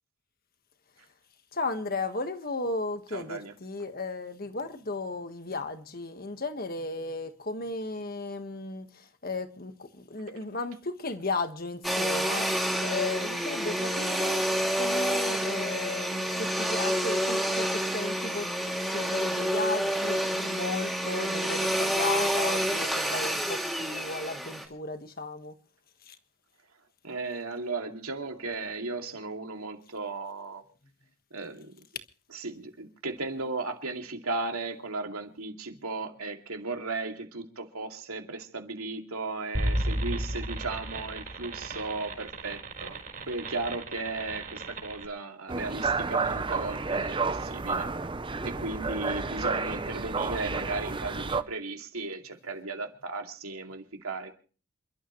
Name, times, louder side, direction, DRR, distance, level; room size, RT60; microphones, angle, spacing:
voice 1, 1.5-12.5 12.8-14.4 14.7-18.5 18.8-25.5 26.1-26.2, left 3 dB, 40° left, 1.5 m, -35 dB
voice 2, 3.1-3.6 27.0-30.6 31.3-31.8 32.3-43.0 43.3-47.9 48.4-54.3, right 3 dB, 80° right, 2.6 m, -36 dB
Domestic sounds home sounds, 11.8-24.7, equal, ahead, 2.5 m, -28 dB
sound 1, 39.5-45.0, right 1 dB, 40° right, 4.3 m, -34 dB
sound 2, 45.5-51.4, right 4 dB, 20° right, 0.7 m, -31 dB
28.0 x 12.5 x 3.1 m
head